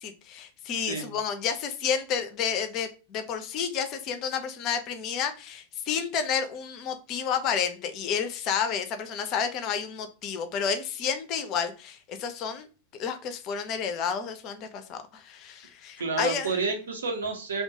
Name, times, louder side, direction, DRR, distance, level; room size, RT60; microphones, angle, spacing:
voice 1, 0.0-12.7 12.9-16.6, left 7 dB, 40° left, 0.4 m, -30 dB
voice 2, 16.0-17.6, right 4 dB, 70° right, 0.6 m, -30 dB
2.3 x 2.2 x 2.7 m
figure-of-eight pair, 90°, 0 cm